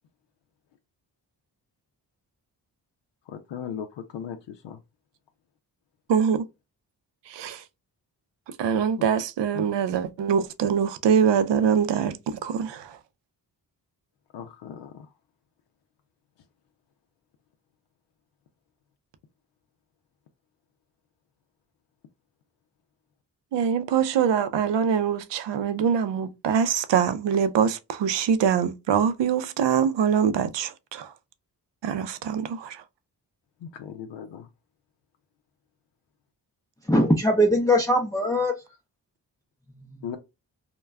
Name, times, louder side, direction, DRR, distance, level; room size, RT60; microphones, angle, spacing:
voice 1, 3.3-4.8 9.0-9.1 9.5-9.6 14.3-15.1 33.6-34.5 40.0-40.2, left 8 dB, 75° left, 0.5 m, -37 dB
voice 2, 6.1-6.5 7.3-7.6 8.5-13.0 23.5-31.1 31.8-32.8, right 7 dB, 70° right, 0.5 m, -24 dB
voice 3, 36.8-38.6 39.7-40.1, equal, 10° left, 0.5 m, -22 dB
2.2 x 2.2 x 3.2 m
supercardioid pair, 40°, 44 cm